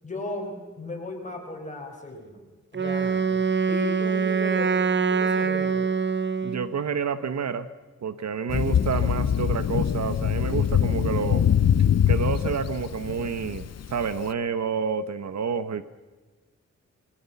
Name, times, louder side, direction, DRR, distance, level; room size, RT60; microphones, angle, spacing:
voice 1, 0.0-2.4 2.7-4.7 5.1-5.9, left 1 dB, 25° left, 1 dB, 5.0 m, -35 dB
Wind instrument woodwind instrument, 2.7-6.7, right 6 dB, 40° right, 1.0 m, -24 dB
voice 2, 6.4-7.7 8.0-11.5 12.1-15.8, right 6 dB, 65° right, 13 dB, 1.1 m, -29 dB
Thunder, 8.5-14.2, left 9 dB, 60° left, 0.7 m, -23 dB
27.0 x 21.0 x 7.0 m, 1.3 s
wide cardioid pair, 170°, 29 cm